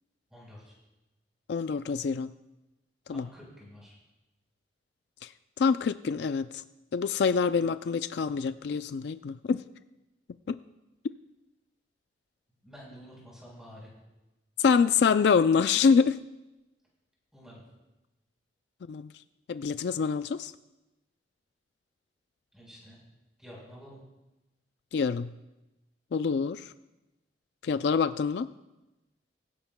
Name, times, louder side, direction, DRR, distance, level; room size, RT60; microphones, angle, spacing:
voice 1, 0.3-0.7 3.1-4.0 12.5-13.9 17.3-17.6 22.5-23.0 23.4-24.0, equal, 5° right, -4 dB, 4.3 m, -49 dB
voice 2, 1.5-2.3 3.1-3.2 5.6-6.6 6.9-9.6 10.5-10.6 14.6-16.2 18.9-19.1 19.5-20.5 24.9-25.3 26.1-26.6 27.6-28.5, left 5 dB, 70° left, 12 dB, 0.3 m, -25 dB
23.0 x 10.0 x 2.2 m, 1.0 s
head